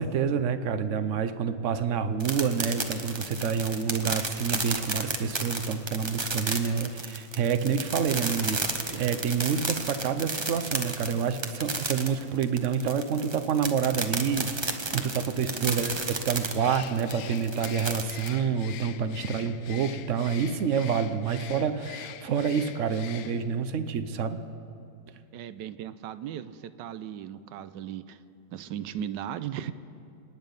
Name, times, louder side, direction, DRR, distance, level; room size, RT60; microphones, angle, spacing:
voice 1, 0.0-24.4, right 6 dB, 55° right, 11 dB, 0.9 m, -28 dB
sound 1, 2.2-18.3, right 3 dB, 30° right, 0.5 m, -32 dB
voice 2, 15.5-16.0 25.3-28.2 28.5-29.7, right 10 dB, 80° right, 13 dB, 1.2 m, -37 dB
Bird, 16.5-23.6, left 11 dB, 70° left, 0.9 m, -44 dB
27.0 x 9.7 x 5.3 m, 2.6 s
omnidirectional pair, 1.9 m